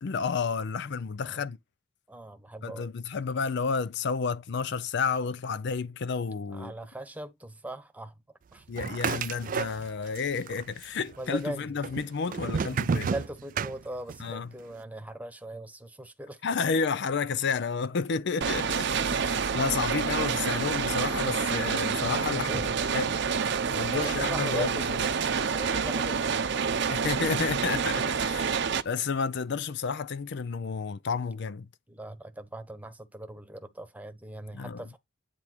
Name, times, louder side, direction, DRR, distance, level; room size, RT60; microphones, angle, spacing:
voice 1, 0.0-1.6 2.6-6.7 8.7-13.1 14.2-14.5 16.4-22.5 22.9-23.1 23.7-24.7 26.9-28.5 28.9-31.7 34.5-34.8, left 5 dB, 60° left, 0.5 m, -31 dB
voice 2, 2.1-2.9 6.5-8.2 8.5-8.7 11.2-11.7 13.1-16.4 22.3-22.7 23.9-27.0 31.9-35.0, right 1 dB, 10° right, 1.1 m, -40 dB
sound 1, 8.8-10.2 10.5-11.2 11.8-14.3, right 6 dB, 45° right, 0.4 m, -31 dB
sound 2, 18.4-28.8, right 6 dB, 60° right, 0.8 m, -28 dB
10.0 x 3.5 x 4.4 m
head